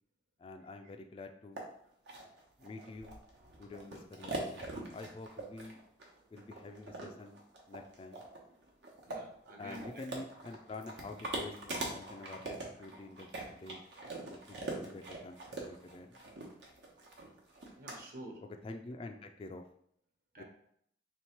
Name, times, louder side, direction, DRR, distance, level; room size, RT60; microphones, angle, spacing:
voice 1, 0.4-1.6 2.6-3.2 3.6-5.8 6.3-7.4 7.7-8.2 9.6-13.8 14.2-16.2 18.4-19.6 20.4-20.5, left 3 dB, 30° left, 5 dB, 0.3 m, -48 dB
sound 1, 1.6-1.7 2.1-17.9, right 2 dB, 85° right, 1.0 m, -43 dB
voice 2, 9.0-9.9 17.8-18.4 20.3-20.4, right 1 dB, 55° right, 1 dB, 0.9 m, -48 dB
3.2 x 3.1 x 4.4 m, 0.68 s
head